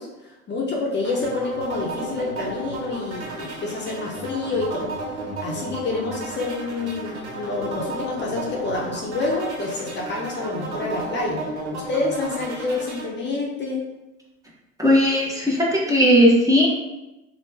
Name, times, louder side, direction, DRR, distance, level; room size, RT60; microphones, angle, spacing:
voice 1, 0.0-4.9 5.4-11.4 11.7-13.8, left 3 dB, 30° left, -2 dB, 0.7 m, -28 dB
sound 1, 1.0-13.1, right 2 dB, 80° right, 0.9 m, -33 dB
voice 2, 14.8-16.7, equal, 10° right, -4 dB, 0.8 m, -17 dB
2.9 x 2.2 x 3.3 m, 1.0 s
hypercardioid pair, 75°, 34 cm